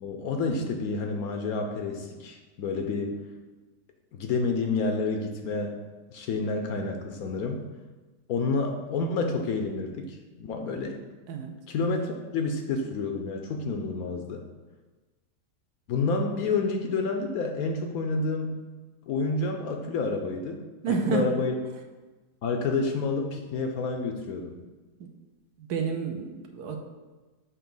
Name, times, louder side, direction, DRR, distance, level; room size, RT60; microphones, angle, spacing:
voice 1, 0.0-3.2 4.1-5.8 6.1-7.6 8.3-11.0 11.7-14.4 15.9-18.6 19.1-21.6 22.4-24.6, left 3 dB, 70° left, 4 dB, 1.0 m, -29 dB
voice 2, 20.8-21.3 25.6-26.8, right 5 dB, 70° right, 4 dB, 1.1 m, -29 dB
7.0 x 2.8 x 5.3 m, 1.2 s
omnidirectional pair, 1.9 m